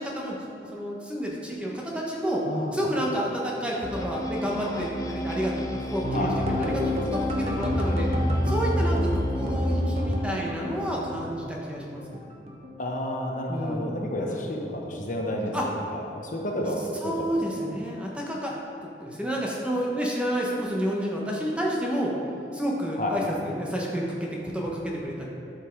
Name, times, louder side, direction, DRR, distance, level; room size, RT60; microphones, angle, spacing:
voice 1, 0.0-2.4 2.7-6.3 6.6-8.1 8.4-12.3 13.5-14.0 14.3-14.4 15.5-15.7 17.0-18.6 19.0-22.1 22.5-25.2, equal, 5° right, -3 dB, 1.2 m, -30 dB
voice 2, 2.4-2.9 6.1-6.7 12.8-15.6 15.9-17.1 23.0-23.3, left 1 dB, 45° left, -1 dB, 1.1 m, -31 dB
sound 1, 3.8-10.4, left 1 dB, 20° left, 0.6 m, -33 dB
sound 2, 6.0-12.2 12.5-13.5 13.8-14.2 14.5-14.7, equal, 40° right, 1.1 m, -28 dB
12.0 x 5.6 x 4.7 m, 2.8 s
head